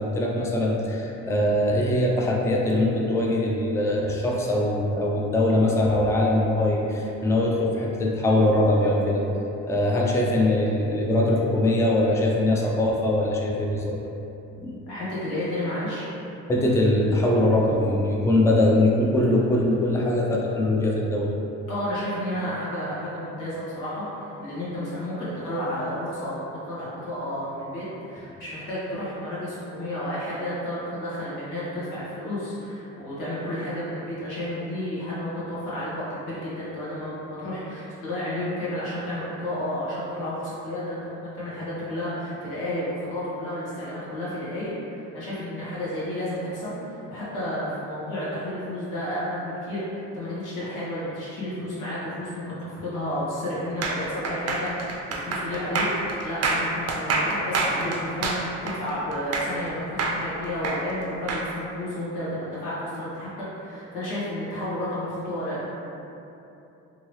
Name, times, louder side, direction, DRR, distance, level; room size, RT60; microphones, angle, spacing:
voice 1, 0.0-9.2 9.7-14.0 14.6-14.8 16.5-21.3 60.0-60.1, left 1 dB, 10° left, -2 dB, 0.4 m, -22 dB
voice 2, 14.9-16.0 21.7-55.9 56.2-65.7, left 1 dB, 90° left, -9 dB, 1.2 m, -31 dB
sound 1, 53.8-59.7 60.0-61.5, right 3 dB, 55° right, 0.5 m, -27 dB
2.9 x 2.7 x 3.0 m, 2.9 s
cardioid pair, 90°, 30 cm